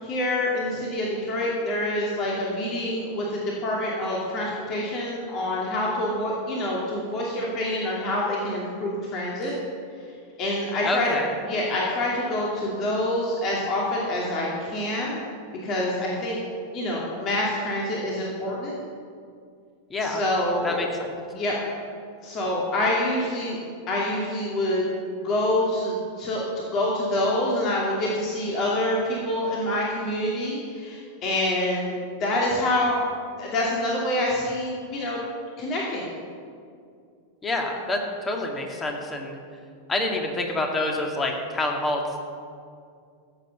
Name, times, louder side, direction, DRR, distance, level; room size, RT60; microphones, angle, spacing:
voice 1, 0.0-9.5 10.4-11.1 11.5-15.2 15.6-16.4 16.7-18.8 20.0-20.8 21.3-21.5 22.2-23.6 23.9-26.4 26.7-31.9 32.2-33.0 33.4-35.2 35.6-36.1, left 1 dB, 35° left, -4 dB, 2.5 m, -26 dB
voice 2, 10.8-11.3 19.9-20.2 20.6-21.0 37.4-39.4 39.9-42.2, left 2 dB, 15° left, 2 dB, 2.1 m, -27 dB
15.5 x 7.9 x 7.0 m, 2.3 s
figure-of-eight pair, 90°, 0 cm